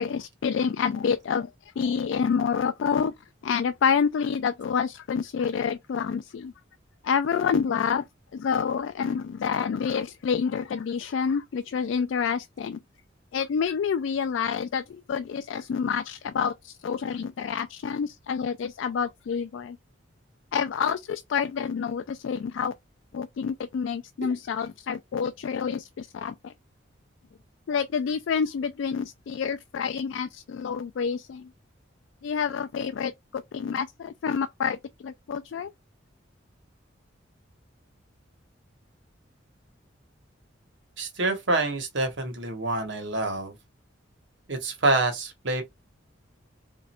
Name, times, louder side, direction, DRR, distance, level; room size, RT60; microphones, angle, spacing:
voice 1, 0.0-1.5 1.8-3.1 3.4-6.5 7.0-8.0 8.3-12.8 13.3-19.8 20.5-22.7 23.1-26.5 27.7-31.5 32.2-35.7, left 6 dB, 75° left, 0.3 m, -28 dB
voice 2, 41.0-43.5 44.5-45.6, right 2 dB, 65° right, 1.1 m, -26 dB
3.0 x 2.5 x 4.2 m
head